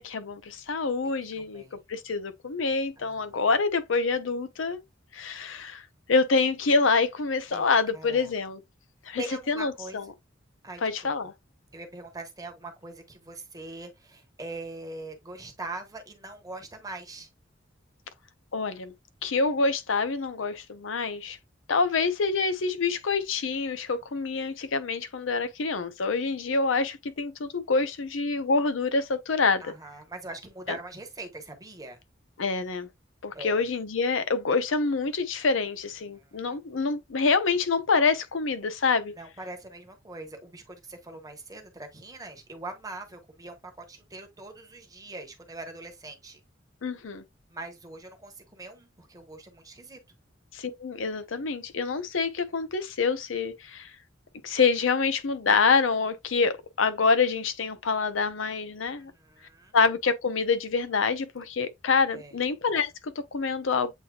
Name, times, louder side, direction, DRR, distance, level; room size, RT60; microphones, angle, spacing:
voice 1, 0.0-1.6 1.9-4.8 5.1-5.8 6.1-8.6 9.1-10.1 10.8-11.3 18.5-18.9 19.2-21.4 21.7-29.7 32.4-32.9 33.2-39.1 46.8-47.2 50.5-53.9 54.4-59.1 59.7-63.9, left 4 dB, 75° left, 0.6 m, -26 dB
voice 2, 1.4-1.8 3.0-3.4 7.5-7.7 7.9-8.3 9.2-10.0 10.6-11.1 11.7-17.3 29.6-32.0 33.3-33.7 36.1-36.6 39.2-46.4 47.5-50.0 59.0-59.7 62.1-62.4, right 2 dB, 20° right, 1.1 m, -42 dB
8.1 x 2.8 x 2.3 m
head